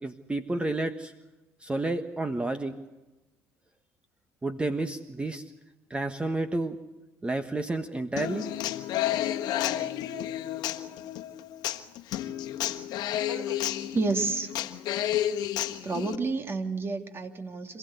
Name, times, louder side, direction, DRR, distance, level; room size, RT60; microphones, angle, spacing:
voice 1, 0.0-1.1 1.6-2.7 4.4-5.4 5.9-6.8 7.2-8.4, right 2 dB, 15° right, 8 dB, 1.4 m, -30 dB
Human voice / Acoustic guitar, 8.2-16.1, left 12 dB, 65° left, 1.4 m, -31 dB
voice 2, 13.3-14.5 15.8-17.8, right 3 dB, 30° right, 6 dB, 2.9 m, -31 dB
26.5 x 16.0 x 8.2 m, 1.1 s
hypercardioid pair, 75°, 8 cm